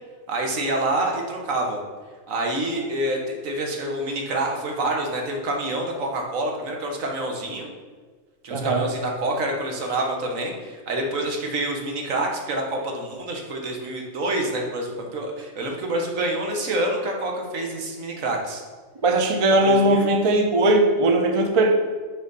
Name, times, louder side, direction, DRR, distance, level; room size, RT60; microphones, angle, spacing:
voice 1, 0.3-1.8 2.3-7.7 8.4-18.6 19.6-20.1, right 1 dB, 75° right, 1 dB, 1.5 m, -27 dB
voice 2, 8.5-8.9 19.0-21.7, right 2 dB, 35° right, 4 dB, 0.6 m, -19 dB
6.5 x 4.3 x 5.2 m, 1.5 s
omnidirectional pair, 1.4 m